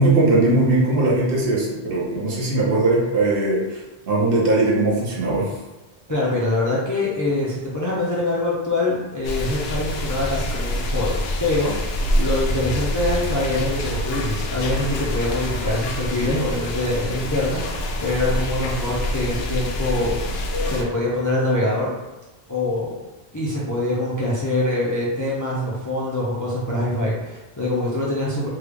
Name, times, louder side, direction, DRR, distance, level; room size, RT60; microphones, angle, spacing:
voice 1, 0.0-3.6 4.1-5.5, right 2 dB, 60° right, -4 dB, 1.0 m, -19 dB
voice 2, 6.1-11.7 12.1-21.9 22.5-22.9 23.3-28.5, left 2 dB, 25° left, -6 dB, 0.4 m, -24 dB
sound 1, 9.2-20.8, equal, 70° left, 0.8 m, -26 dB
3.4 x 2.2 x 3.3 m, 1.1 s
omnidirectional pair, 1.1 m